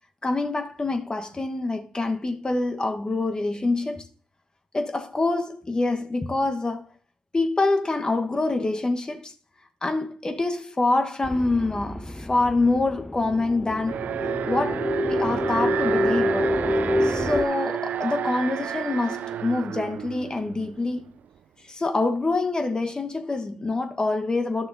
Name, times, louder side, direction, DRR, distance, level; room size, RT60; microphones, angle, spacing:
voice 1, 0.2-4.0 4.7-6.9 7.3-9.3 9.8-14.0 14.4-14.8 15.1-16.5 17.0-21.1 21.7-24.7, left 2 dB, 30° left, 1.2 m, -26 dB
sound 1, 11.2-17.4, left 1 dB, 10° left, 0.5 m, -27 dB
Alarm, 13.9-21.0, right 10 dB, 65° right, 0.4 m, -30 dB
11.5 x 6.5 x 2.7 m
hypercardioid pair, 45°, 3 cm